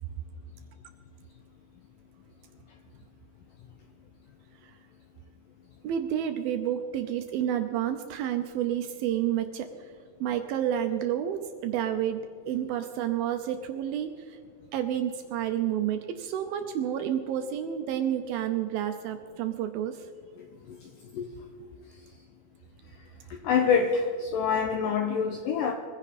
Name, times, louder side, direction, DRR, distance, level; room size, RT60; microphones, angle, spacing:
voice 1, 5.8-9.7 10.2-14.3 14.7-20.0, right 10 dB, 80° right, 7 dB, 2.3 m, -30 dB
voice 2, 23.4-25.7, left 6 dB, 80° left, 5 dB, 2.0 m, -25 dB
22.0 x 15.0 x 4.2 m, 2.1 s
omnidirectional pair, 4.8 m